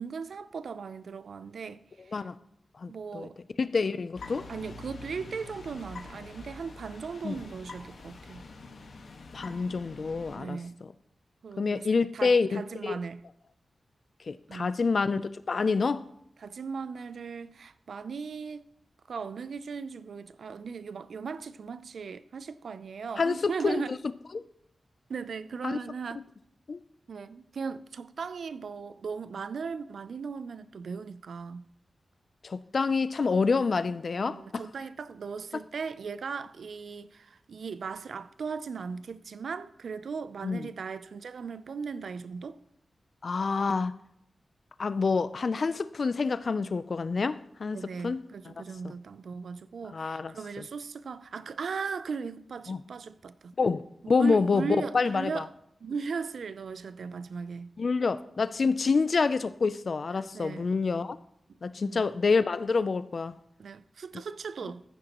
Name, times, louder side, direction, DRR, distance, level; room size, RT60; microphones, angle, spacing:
voice 1, 0.0-2.2 2.9-3.4 3.9-4.0 4.5-8.4 10.4-10.8 11.4-11.9 12.1-13.2 14.5-14.7 16.4-18.7 19.1-24.0 25.1-26.2 27.1-31.7 34.2-42.6 47.7-53.5 54.0-55.5 55.8-57.7 58.6-58.8 60.3-60.7 61.8-62.1 63.6-64.8, right 5 dB, 75° right, 0.4 m, -38 dB
voice 2, 2.8-3.3 3.6-4.5 7.2-7.4 9.3-10.6 11.6-13.0 14.3-16.0 23.2-24.0 24.3-24.4 25.6-25.8 26.2-26.3 26.7-26.8 32.4-34.6 40.4-40.7 43.2-44.0 44.8-48.2 48.8-48.9 49.9-50.7 52.7-52.8 53.6-55.5 57.8-61.2 61.6-63.4, left 4 dB, 50° left, 0.4 m, -27 dB
sound 1, 4.1-10.4, left 3 dB, 75° left, 1.4 m, -45 dB
14.5 x 10.0 x 3.0 m
wide cardioid pair, 140°, 0 cm